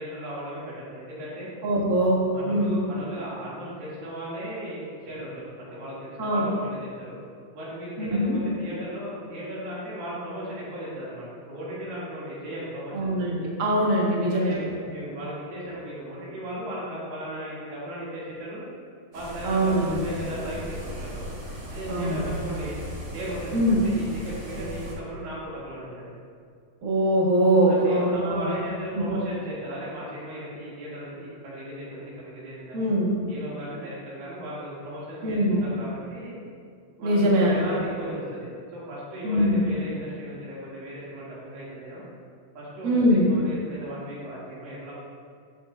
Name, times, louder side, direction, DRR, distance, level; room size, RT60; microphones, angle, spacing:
voice 1, 0.0-1.5 2.1-7.2 7.5-13.1 14.1-18.6 19.1-21.3 21.7-22.8 23.1-26.1 27.6-32.9 33.3-36.4 37.0-42.0 42.6-44.9, equal, 85° right, -8 dB, 4.0 m, -36 dB
voice 2, 1.6-2.2 2.5-2.8 6.2-6.5 8.0-8.4 12.9-14.6 19.4-20.0 21.9-22.2 23.5-23.8 26.8-28.5 32.7-33.1 35.2-35.6 37.0-37.5 39.2-39.6 42.8-43.3, equal, 60° right, -4 dB, 0.8 m, -22 dB
sound 1, 19.1-24.9, right 1 dB, 35° right, 2.3 m, -37 dB
11.5 x 7.4 x 2.5 m, 2.2 s
omnidirectional pair, 4.0 m